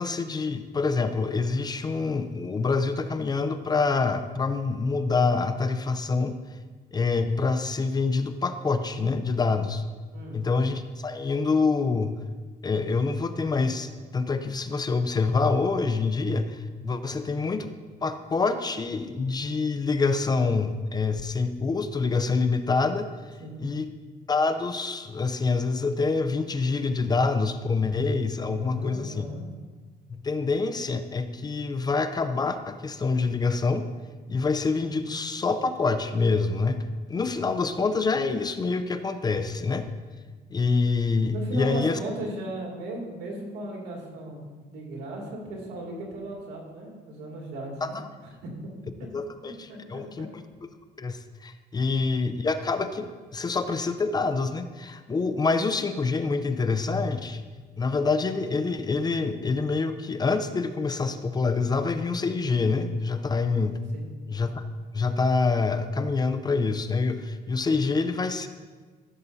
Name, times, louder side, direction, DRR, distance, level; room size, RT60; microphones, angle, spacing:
voice 1, 0.0-6.3 6.9-9.8 10.3-12.2 12.6-17.7 18.0-23.1 23.6-23.9 24.3-29.2 30.1-33.9 34.3-36.8 37.1-39.9 40.5-42.0 47.8-48.0 49.1-50.4 51.0-57.4 57.8-63.8 64.3-64.6 64.9-68.5, left 4 dB, 25° left, 10 dB, 0.5 m, -26 dB
voice 2, 10.1-10.4 23.4-23.6 28.7-29.4 41.3-48.0 48.2-48.7 49.7-50.3 63.9-64.1, right 1 dB, 85° right, -2 dB, 2.4 m, -36 dB
14.5 x 6.9 x 2.7 m, 1.4 s
cardioid pair, 110°, 17 cm